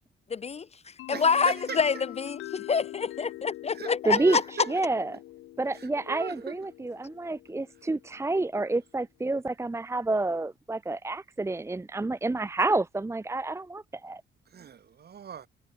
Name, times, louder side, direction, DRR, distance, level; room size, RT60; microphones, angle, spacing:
voice 1, 0.3-0.7 1.1-4.4, left 5 dB, 30° left, 0.7 m, -27 dB
sound 1, 1.0-8.6, left 16 dB, 90° left, 2.2 m, -44 dB
voice 2, 1.1-1.8 3.7-5.1 5.8-6.6 14.5-15.5, right 8 dB, 55° right, 3.9 m, -39 dB
voice 3, 4.0-5.2 5.6-14.2, right 2 dB, 15° right, 0.9 m, -29 dB
cardioid pair, 90°, 20 cm